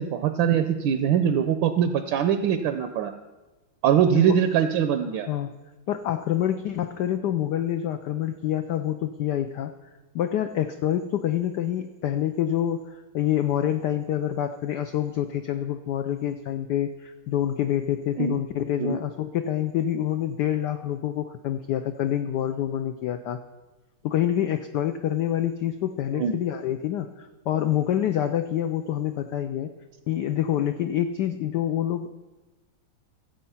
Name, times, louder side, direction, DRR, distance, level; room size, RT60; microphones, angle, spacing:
voice 1, 0.0-3.1 3.8-5.3 18.2-18.4 18.8-19.0 26.1-26.3, right 8 dB, 70° right, 9 dB, 1.2 m, -22 dB
voice 2, 5.9-9.7 10.1-23.4 24.0-29.7 30.1-32.1, left 11 dB, 80° left, 8 dB, 0.9 m, -27 dB
15.0 x 7.5 x 5.6 m, 1.1 s
omnidirectional pair, 2.4 m